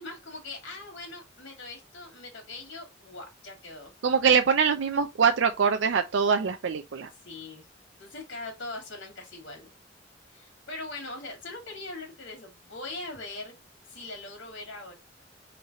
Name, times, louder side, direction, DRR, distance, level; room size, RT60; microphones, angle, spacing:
voice 1, 0.0-3.9 7.2-7.7 8.0-9.7 10.3-13.5 13.9-14.9, left 2 dB, 75° left, 2.1 m, -41 dB
voice 2, 4.0-7.1, right 6 dB, 70° right, 0.5 m, -23 dB
3.9 x 3.3 x 4.0 m
head